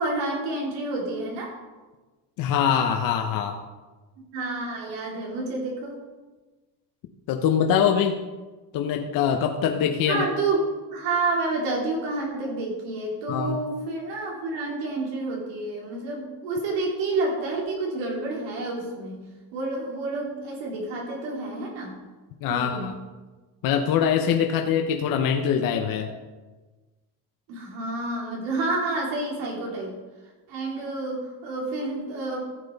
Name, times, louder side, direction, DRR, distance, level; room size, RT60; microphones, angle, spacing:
voice 1, 0.0-1.5 4.2-6.0 10.1-19.2 19.5-21.9 22.5-22.9 27.5-29.9 30.5-32.4, right 2 dB, 90° right, -2 dB, 3.6 m, -29 dB
voice 2, 2.4-3.6 7.3-8.2 8.7-10.2 13.3-13.6 22.4-22.9 23.6-26.1, left 8 dB, 55° left, 4 dB, 0.8 m, -23 dB
14.5 x 7.6 x 4.0 m, 1.2 s
cardioid pair, 145°, 41 cm